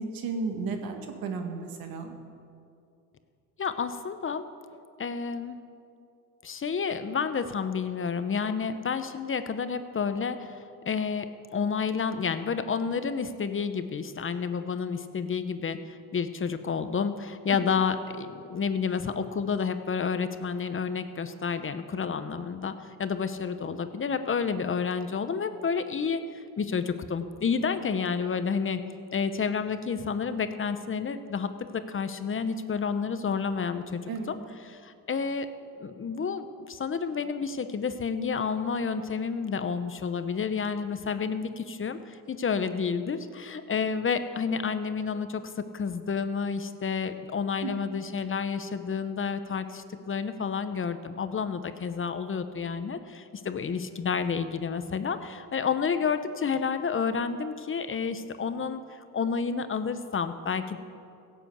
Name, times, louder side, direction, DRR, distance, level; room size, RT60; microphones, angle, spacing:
voice 1, 0.0-2.1 34.1-34.3 47.6-47.7, right 4 dB, 75° right, 4 dB, 1.9 m, -33 dB
voice 2, 3.6-4.4 5.0-5.6 6.4-28.8 29.1-34.0 34.3-34.4 34.7-35.5 35.8-45.4 45.7-60.8, left 6 dB, 35° left, 10 dB, 0.9 m, -30 dB
16.5 x 7.9 x 8.1 m, 2.5 s
cardioid pair, 85°, 36 cm